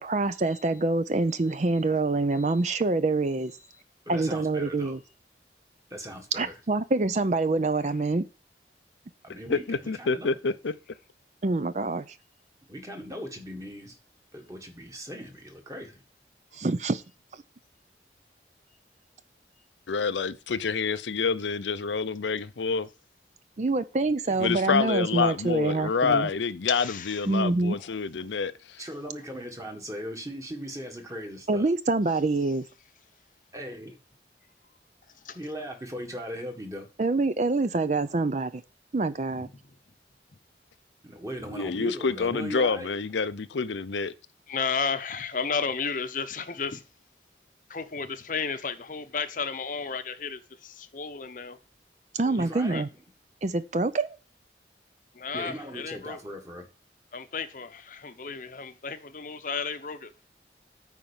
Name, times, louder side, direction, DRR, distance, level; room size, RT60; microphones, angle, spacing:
voice 1, 0.0-3.5 4.1-5.0 6.3-8.2 11.4-12.2 16.5-17.0 23.6-26.3 27.3-27.8 31.5-32.6 37.0-38.6 38.9-39.5 52.1-52.9 53.4-54.2, right 3 dB, 40° right, 0.5 m, -26 dB
voice 2, 4.1-5.0 5.9-6.6 9.2-10.4 12.7-14.0 14.3-16.0 28.8-31.7 33.5-34.0 35.4-36.9 41.0-43.0 52.4-52.8 55.3-56.7, equal, 20° right, 1.6 m, -38 dB
voice 3, 9.3-10.7 19.9-22.9 24.4-28.8 41.5-44.1, left 5 dB, 90° left, 0.6 m, -28 dB
voice 4, 26.7-27.3 27.7-27.9 28.2-28.3 35.1-35.4 39.3-39.5 44.5-46.8 47.7-51.6 52.2-52.8 55.1-56.2 57.1-60.1, left 5 dB, 45° left, 0.8 m, -33 dB
9.2 x 4.5 x 7.2 m
head